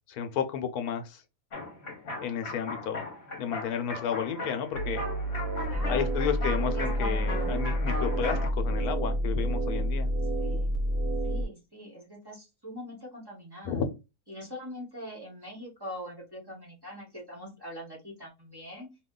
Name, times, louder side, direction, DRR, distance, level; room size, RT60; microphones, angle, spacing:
voice 1, 0.1-1.2 2.2-3.1 3.4-5.0 5.9-10.1 13.6-13.9, left 8 dB, 85° left, 8 dB, 1.1 m, -32 dB
sound 1, 1.5-8.5, left 2 dB, 50° left, 1.1 m, -37 dB
sound 2, 4.7-11.4, right 1 dB, 90° right, 1.2 m, -29 dB
voice 2, 5.6-6.3 6.6-6.9 10.4-10.8 11.2-13.8 14.3-18.9, equal, 20° right, -3 dB, 0.9 m, -43 dB
2.7 x 2.3 x 3.6 m, 0.26 s
omnidirectional pair, 1.5 m